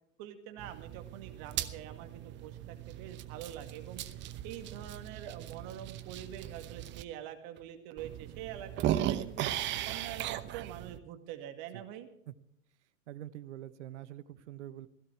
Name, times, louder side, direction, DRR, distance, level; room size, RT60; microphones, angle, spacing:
voice 1, 0.2-9.5 9.9-12.1, right 11 dB, 45° right, 7 dB, 2.2 m, -45 dB
sound 1, 0.6-7.0 7.6-7.7 8.0-11.0, right 12 dB, 30° right, 0.9 m, -37 dB
voice 2, 13.1-14.9, right 13 dB, 60° right, 14 dB, 1.2 m, -45 dB
17.0 x 14.5 x 4.6 m, 0.73 s
figure-of-eight pair, 105°, 40 cm